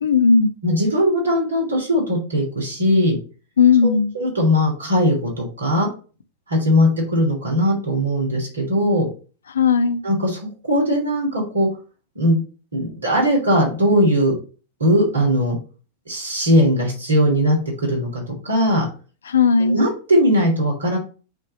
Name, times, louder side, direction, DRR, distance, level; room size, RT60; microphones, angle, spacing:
voice 1, 0.0-0.5 3.6-4.1 9.5-10.0 19.3-19.8, left 5 dB, 70° left, 0.7 m, -16 dB
voice 2, 0.6-3.2 3.8-5.9 6.5-9.1 10.0-11.7 12.1-12.4 12.7-14.3 14.8-15.6 16.1-17.6 17.8-18.8 19.6-21.0, equal, 70° right, 3.0 m, -19 dB
8.2 x 3.5 x 4.3 m
figure-of-eight pair, 90°, 0 cm